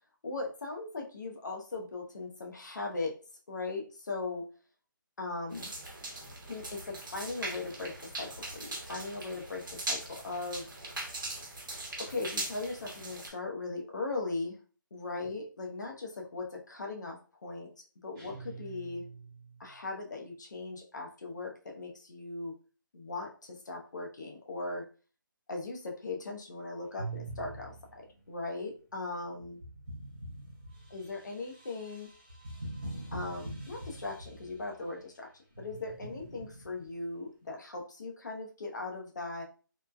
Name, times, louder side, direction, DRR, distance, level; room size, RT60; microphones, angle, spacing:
voice 1, 0.2-3.2 3.5-4.5 5.2-5.7 6.5-10.7 12.0-14.6 14.9-17.7 18.0-19.0 19.6-22.5 22.9-24.8 25.5-28.0 28.3-29.6 30.9-32.1 33.1-35.3 35.6-39.4, left 3 dB, 60° left, 1 dB, 0.7 m, -39 dB
sound 1, 5.5-13.3, right 2 dB, 65° right, 0.9 m, -40 dB
sound 2, 18.1-19.9, right 5 dB, 5° right, 0.4 m, -48 dB
sound 3, 27.0-28.2 29.4-34.8 35.5-36.9, right 2 dB, 25° right, 0.8 m, -44 dB
3.1 x 2.1 x 2.2 m, 0.37 s
hypercardioid pair, 175°, 11 cm